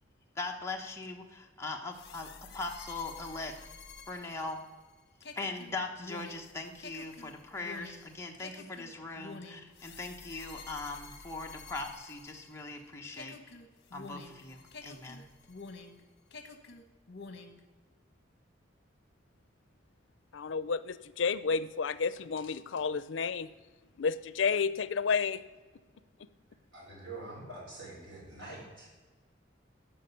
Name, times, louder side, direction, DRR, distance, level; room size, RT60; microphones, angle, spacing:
voice 1, 0.3-3.7 4.1-4.6 5.4-13.4 13.9-15.3, left 3 dB, 15° left, 1 dB, 1.1 m, -40 dB
sound 1, 1.9-12.8 13.1-16.0 16.3-17.6, left 4 dB, 60° left, 1.1 m, -49 dB
voice 2, 20.3-23.5 24.0-25.4 26.2-26.3, left 5 dB, 85° left, 15 dB, 0.5 m, -31 dB
voice 3, 26.7-28.9, right 2 dB, 80° right, -3 dB, 4.2 m, -45 dB
12.5 x 5.5 x 6.9 m, 1.3 s
head